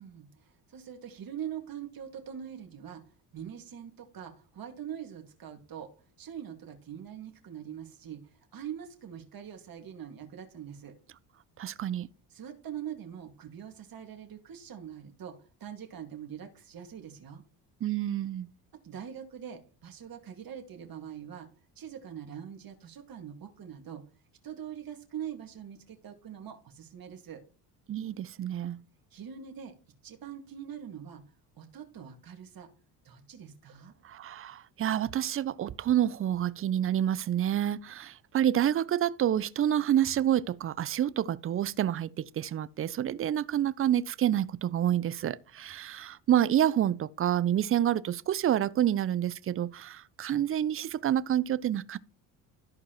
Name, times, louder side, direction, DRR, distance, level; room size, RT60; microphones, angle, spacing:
voice 1, 0.0-5.9 6.2-8.2 8.5-10.9 12.3-17.4 18.8-21.5 21.8-24.0 24.4-27.4 29.1-29.7 30.0-31.2 31.6-32.7 33.0-33.9, right 9 dB, 45° right, 2.0 m, -43 dB
voice 2, 11.6-12.1 17.8-18.5 27.9-28.8 34.0-52.0, right 11 dB, 30° right, 0.4 m, -28 dB
13.5 x 4.6 x 3.0 m
hypercardioid pair, 65°, 47 cm